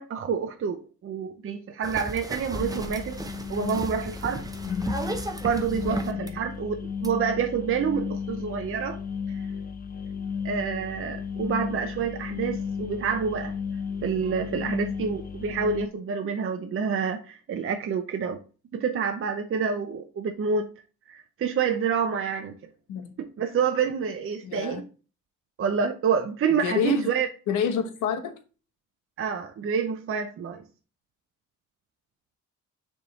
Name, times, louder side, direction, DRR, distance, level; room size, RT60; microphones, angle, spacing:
voice 1, 0.0-3.2 3.5-4.4 5.4-9.0 10.4-13.5 14.0-18.4 18.7-20.7 21.1-22.5 23.2-24.8 25.6-27.3 29.2-30.6, right 6 dB, 45° right, 0.7 m, -28 dB
sound 1, 1.8-6.3 7.0-7.1, right 2 dB, 10° right, 0.8 m, -35 dB
sound 2, 2.6-15.9, left 6 dB, 30° left, 0.6 m, -34 dB
voice 2, 4.7-5.0 6.1-6.4 22.9-23.1 24.4-24.8 26.5-27.1 27.5-28.3, left 7 dB, 85° left, 1.1 m, -29 dB
6.7 x 3.6 x 4.0 m
cardioid pair, 90°, 30 cm